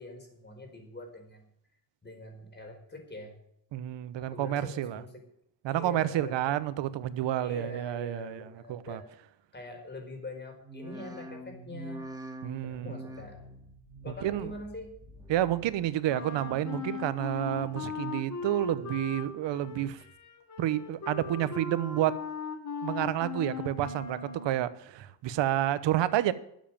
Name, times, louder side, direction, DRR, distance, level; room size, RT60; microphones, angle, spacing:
voice 1, 0.0-1.5 2.0-3.4 4.2-5.2 5.7-6.6 7.4-9.1 9.5-12.1 12.6-13.4 14.0-15.0, left 2 dB, 25° left, 4.7 m, -44 dB
voice 2, 3.7-5.0 5.6-8.4 8.7-9.0 12.4-12.9 14.2-14.5 15.3-20.0 20.6-22.1 22.8-26.3, right 13 dB, 85° right, 1.1 m, -30 dB
sound 1, 10.6-15.9 16.2-16.9 17.3-18.0 18.4-19.1 19.5-20.2 20.6-21.2 21.8-21.9, right 1 dB, 10° right, 2.4 m, -47 dB
Wind instrument woodwind instrument, 16.1-24.7, left 5 dB, 40° left, 2.6 m, -38 dB
12.5 x 7.5 x 8.9 m
cardioid pair, 125°, 43 cm